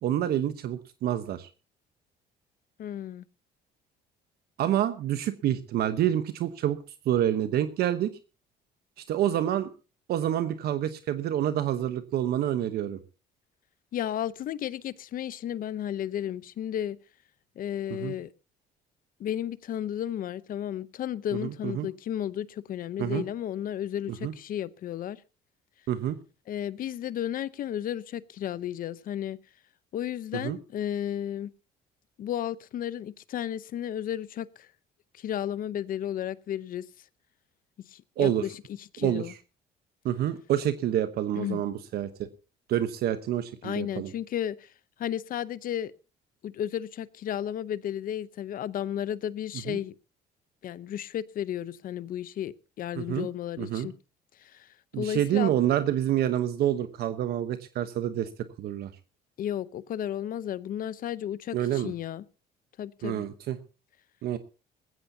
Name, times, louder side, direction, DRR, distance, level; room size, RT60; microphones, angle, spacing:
voice 1, 0.0-1.5 4.6-6.8 7.0-8.1 9.0-9.7 10.1-13.0 18.0-18.1 21.4-21.9 23.0-23.2 24.1-24.3 25.9-26.2 30.4-30.6 38.2-38.4 39.0-39.4 40.0-42.3 42.7-44.1 49.7-49.8 52.9-53.3 53.6-53.9 54.9-58.3 58.6-58.9 61.5-61.9 63.0-63.6 64.2-64.4, right 11 dB, 70° right, 1.0 m, -27 dB
voice 2, 2.8-3.2 13.9-17.0 17.6-18.3 19.2-25.2 26.5-29.4 29.9-31.5 32.2-34.7 35.1-36.9 37.9-39.3 41.4-41.6 43.6-44.7 45.0-45.9 46.4-49.9 50.6-53.9 54.4-54.7 55.0-55.5 59.4-62.2 62.8-63.2, left 10 dB, 55° left, 0.8 m, -33 dB
19.5 x 15.5 x 2.8 m
cardioid pair, 110°, 17 cm